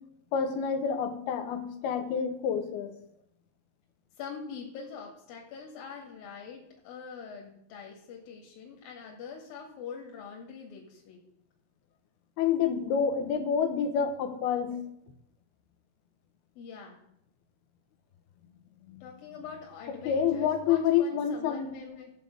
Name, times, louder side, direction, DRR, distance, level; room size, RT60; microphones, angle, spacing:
voice 1, 0.3-2.9 12.4-14.8 18.9-19.0 20.1-21.7, left 7 dB, 90° left, 7 dB, 3.2 m, -28 dB
voice 2, 4.2-11.2 16.6-17.0 19.0-22.1, left 6 dB, 70° left, 0 dB, 3.6 m, -44 dB
14.5 x 5.5 x 7.8 m, 0.77 s
omnidirectional pair, 4.3 m